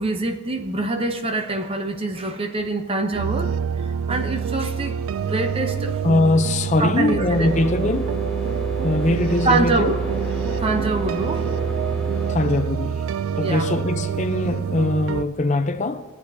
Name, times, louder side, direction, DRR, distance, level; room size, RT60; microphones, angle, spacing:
voice 1, 0.0-6.0 6.8-7.5 9.4-10.0 10.6-11.5 13.4-13.7, right 2 dB, 25° right, 0.6 m, -25 dB
sound 1, 3.1-15.2, right 7 dB, 85° right, 0.3 m, -26 dB
voice 2, 6.0-8.1 8.8-9.9 12.3-13.0 13.4-16.0, left 2 dB, 35° left, 0.5 m, -21 dB
sound 2, 7.3-12.3, right 3 dB, 5° left, 1.7 m, -30 dB
20.5 x 8.5 x 2.7 m
head